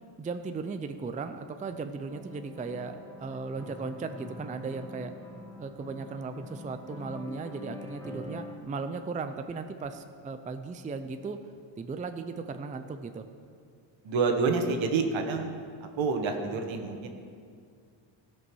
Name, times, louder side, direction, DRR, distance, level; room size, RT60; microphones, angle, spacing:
voice 1, 0.2-5.1 5.6-11.4 11.8-13.2, right 4 dB, 15° right, 8 dB, 0.4 m, -37 dB
sound 1, 2.1-8.6, left 2 dB, 5° left, 1.6 m, -45 dB
voice 2, 14.0-15.5 16.0-17.1, right 4 dB, 70° right, 5 dB, 1.5 m, -28 dB
16.0 x 5.3 x 6.2 m, 2.2 s
cardioid pair, 110°, 48 cm